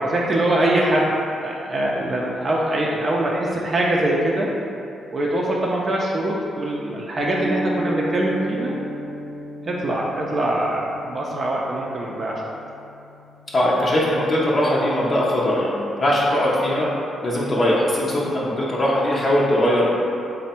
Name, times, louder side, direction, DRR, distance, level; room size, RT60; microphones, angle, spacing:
voice 1, 0.0-4.5 5.1-8.8 9.6-12.4, right 1 dB, 45° right, -3 dB, 0.4 m, -23 dB
sound 1, 7.2-15.6, equal, 75° left, 1.0 m, -34 dB
voice 2, 13.5-16.9 17.2-19.9, left 1 dB, 45° left, -6 dB, 0.6 m, -20 dB
3.2 x 2.1 x 4.1 m, 2.6 s
supercardioid pair, 55°, 0 cm